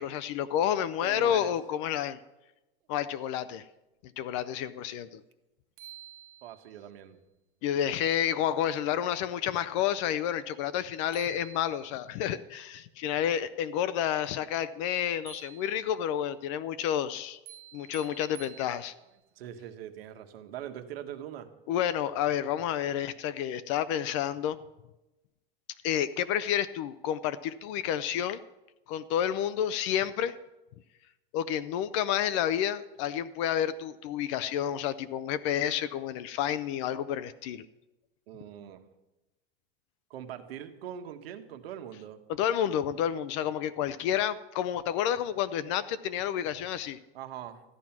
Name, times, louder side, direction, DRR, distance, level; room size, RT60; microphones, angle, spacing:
voice 1, 0.0-2.2 2.9-3.6 4.2-5.2 7.6-17.4 17.7-18.9 21.7-24.6 25.8-28.4 28.9-30.3 31.3-37.7 42.4-47.0, left 10 dB, 35° left, 15 dB, 0.4 m, -30 dB
voice 2, 1.0-1.5 6.4-7.2 19.3-21.5 38.3-38.8 40.1-42.2 47.1-47.6, right 10 dB, 90° right, 7 dB, 1.6 m, -42 dB
sound 1, 5.3-5.4 5.8-6.9 10.8-10.9 11.1-12.2 15.3-16.2 17.5-19.2, right 12 dB, 60° right, 1.0 m, -50 dB
14.0 x 11.0 x 5.9 m, 0.99 s
supercardioid pair, 170°, 29 cm